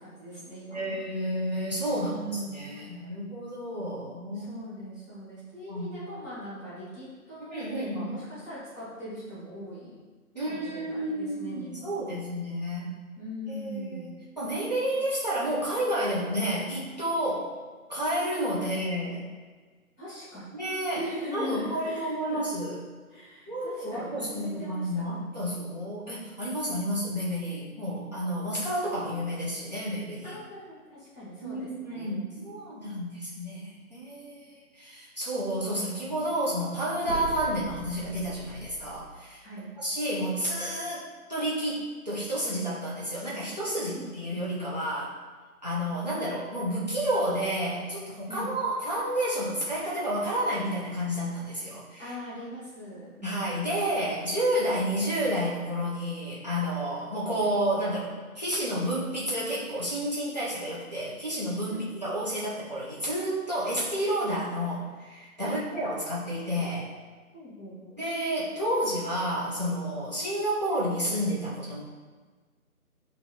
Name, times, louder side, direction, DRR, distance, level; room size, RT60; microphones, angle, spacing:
voice 1, 0.0-1.0 1.9-3.0 4.3-9.9 10.5-12.2 13.2-14.1 20.0-20.4 20.9-22.4 23.1-25.0 30.2-32.2 39.4-39.7 43.9-44.1 48.3-48.5 52.0-53.5 61.6-61.9 65.4-65.6 67.3-68.0, left 1 dB, 10° left, -10 dB, 1.2 m, -40 dB
voice 2, 0.7-2.1 2.5-4.5 5.7-6.0 7.5-8.1 10.3-13.0 13.5-17.5 17.9-19.2 20.5-21.0 21.3-22.8 23.5-30.4 31.4-39.4 39.8-45.2 45.6-52.1 53.2-66.9 68.0-71.8, equal, 30° right, -9 dB, 0.7 m, -30 dB
sound 1, 37.0-39.1, right 3 dB, 55° right, 1.2 m, -40 dB
5.4 x 2.7 x 2.9 m, 1.4 s
figure-of-eight pair, 170°, 44 cm